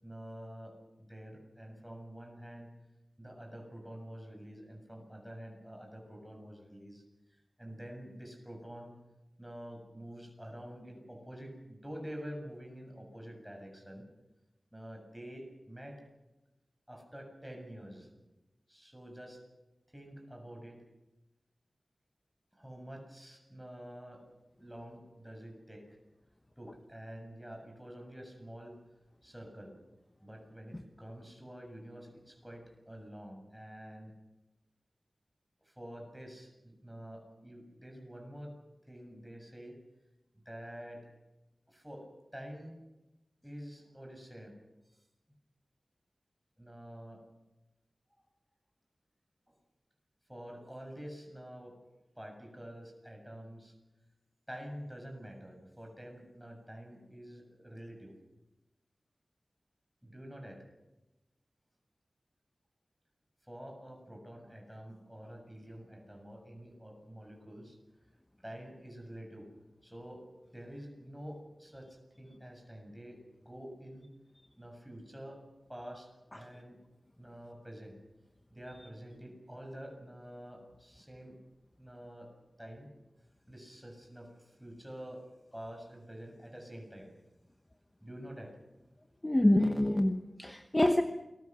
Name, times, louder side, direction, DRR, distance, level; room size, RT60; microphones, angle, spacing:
voice 1, 0.0-2.7 3.2-9.0 9.4-14.1 14.7-16.0 16.9-18.1 18.7-19.4 19.9-20.8 22.5-24.2 24.6-26.0 26.6-28.8 29.2-29.8 30.2-34.1 35.6-38.6 38.8-39.8 40.5-41.1 41.7-42.1 42.3-42.8 43.4-44.6 44.9-45.0 46.6-47.2 49.5-49.6 50.3-51.8 52.2-53.7 54.5-58.1 60.0-60.6 63.4-67.8 68.4-69.5 69.8-70.3 70.5-74.1 74.6-75.4 75.7-76.8 77.2-78.0 78.5-81.4 81.8-82.3 82.6-82.9 83.5-85.2 85.5-87.1 88.0-88.5, equal, 5° right, 7.2 m, -48 dB
voice 2, 89.2-91.0, left 1 dB, 20° left, 1.0 m, -26 dB
28.5 x 21.5 x 6.2 m
wide cardioid pair, 80°, 0 cm